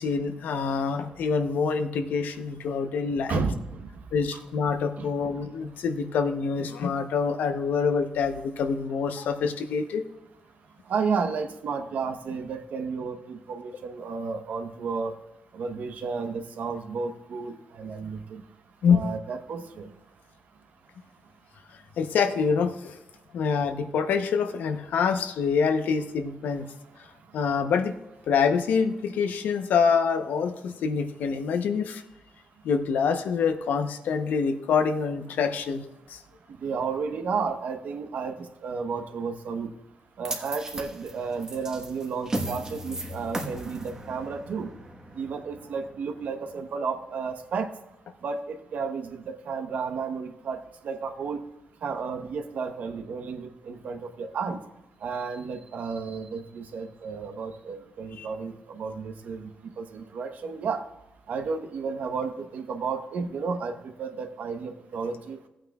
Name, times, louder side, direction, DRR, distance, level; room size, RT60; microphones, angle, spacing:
voice 1, 0.0-3.4 4.1-10.0 18.8-19.0 22.0-23.0 23.3-26.7 27.0-27.1 27.3-27.9 28.3-32.0 32.6-36.2 58.2-58.3, left 5 dB, 85° left, 8 dB, 0.8 m, -26 dB
voice 2, 3.3-3.9 4.3-4.4 5.0-5.1 10.9-15.1 15.5-18.4 18.9-19.9 36.6-39.7 40.2-44.7 45.1-47.7 48.2-50.6 50.8-51.4 51.8-54.6 55.0-59.5 59.8-60.8 61.3-65.4, right 5 dB, 65° right, 7 dB, 0.9 m, -32 dB
sound 1, 40.2-46.5, right 1 dB, 25° right, 1.2 m, -36 dB
16.0 x 8.8 x 2.3 m, 0.93 s
wide cardioid pair, 145°, 3 cm